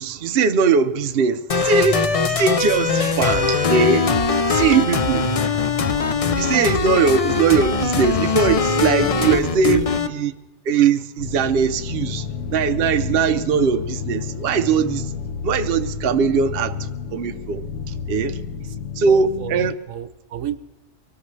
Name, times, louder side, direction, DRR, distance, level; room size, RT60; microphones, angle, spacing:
voice 1, 0.0-4.1 4.5-5.3 6.4-9.8 10.2-10.3 10.7-12.3 12.5-15.1 15.4-16.7 17.1-17.6 18.1-18.4 19.0-19.7, right 6 dB, 55° right, 0.8 m, -20 dB
sound 1, 1.5-10.1, left 5 dB, 40° left, 0.5 m, -21 dB
voice 2, 8.9-9.9 18.6-18.8 19.1-19.6 19.9-20.6, right 12 dB, 80° right, 1.1 m, -29 dB
sound 2, 11.2-19.7, left 6 dB, 70° left, 1.2 m, -30 dB
23.5 x 18.5 x 3.2 m
omnidirectional pair, 1.3 m